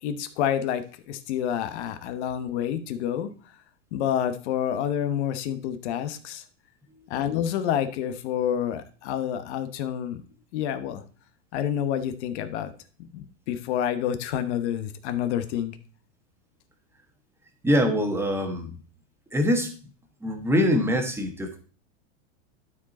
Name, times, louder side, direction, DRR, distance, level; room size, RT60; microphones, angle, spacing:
voice 1, 0.0-3.3 3.9-6.4 7.1-10.2 10.5-11.0 11.5-12.7 13.1-15.8, left 10 dB, 60° left, 10 dB, 1.1 m, -28 dB
voice 2, 17.6-18.7 19.3-19.7 20.2-21.6, equal, 5° right, 4 dB, 1.4 m, -24 dB
12.0 x 4.9 x 4.2 m, 0.39 s
supercardioid pair, 145°, 38 cm